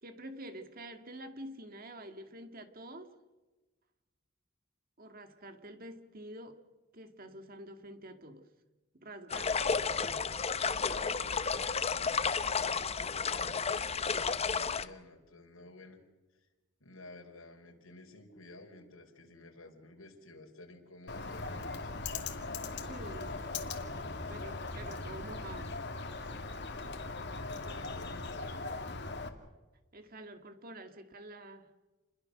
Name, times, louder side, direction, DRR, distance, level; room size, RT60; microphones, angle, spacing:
voice 1, 0.0-3.1 5.0-6.6 6.9-8.5 8.9-10.3 22.9-25.8 29.9-31.7, right 1 dB, 45° right, 7 dB, 2.0 m, -48 dB
sound 1, 9.3-14.9, left 5 dB, 30° left, 0.9 m, -32 dB
voice 2, 10.7-16.0 16.3-16.5 16.8-21.9 27.2-28.8, left 2 dB, 90° left, 2 dB, 4.6 m, -52 dB
Bird, 21.1-29.3, left 3 dB, 55° left, 2.5 m, -39 dB
29.5 x 22.0 x 6.6 m, 1.2 s
head